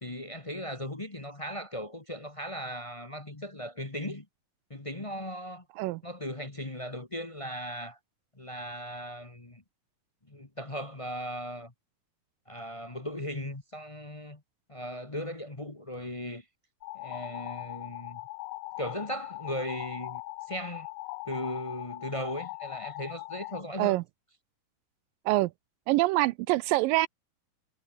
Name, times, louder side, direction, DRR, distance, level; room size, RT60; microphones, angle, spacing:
voice 1, 0.0-4.2 4.7-5.6 6.0-8.0 8.4-9.6 10.3-11.7 12.5-14.4 14.7-16.4 16.9-18.2 18.8-20.2 20.5-20.9 21.3-24.0, equal, 35° left, 0.5 m, -37 dB
sound 1, 16.8-23.6, left 22 dB, 80° left, 1.9 m, -40 dB
voice 2, 25.9-27.1, right 19 dB, 80° right, 2.2 m, -25 dB
omnidirectional pair, 4.1 m